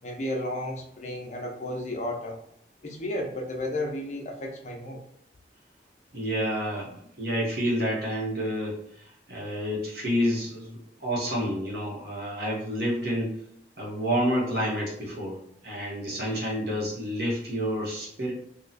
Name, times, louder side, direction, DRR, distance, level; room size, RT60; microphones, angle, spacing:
voice 1, 0.0-2.4 2.8-5.0, left 1 dB, 40° left, 0 dB, 0.6 m, -33 dB
voice 2, 6.1-8.8 9.3-13.3 13.8-15.4 15.6-18.3, equal, 60° right, -4 dB, 1.2 m, -29 dB
2.8 x 2.4 x 4.0 m, 0.75 s
head